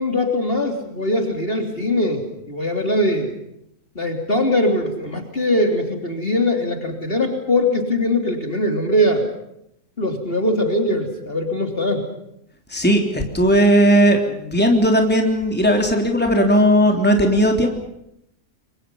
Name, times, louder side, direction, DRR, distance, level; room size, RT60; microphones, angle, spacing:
voice 1, 0.0-3.3 4.0-9.3 10.0-12.0, left 1 dB, 35° left, 4 dB, 3.6 m, -21 dB
voice 2, 12.7-17.7, equal, 5° left, 3 dB, 3.5 m, -16 dB
30.0 x 24.0 x 5.6 m, 0.78 s
omnidirectional pair, 1.7 m